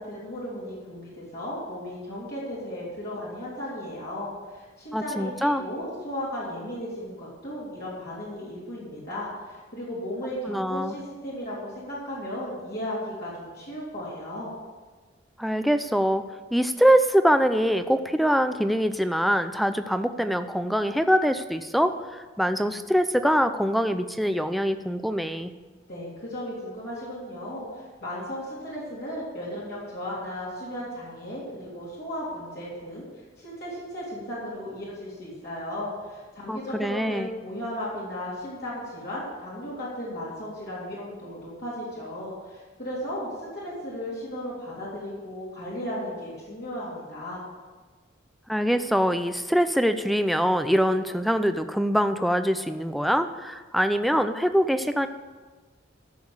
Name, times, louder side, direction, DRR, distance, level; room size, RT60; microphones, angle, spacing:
voice 1, 0.0-14.5 25.9-47.4, left 1 dB, 50° left, -8 dB, 3.3 m, -35 dB
voice 2, 4.9-5.6 10.5-10.9 15.4-25.5 36.5-37.3 48.5-55.1, equal, ahead, 10 dB, 0.5 m, -24 dB
13.0 x 6.8 x 7.2 m, 1.4 s
head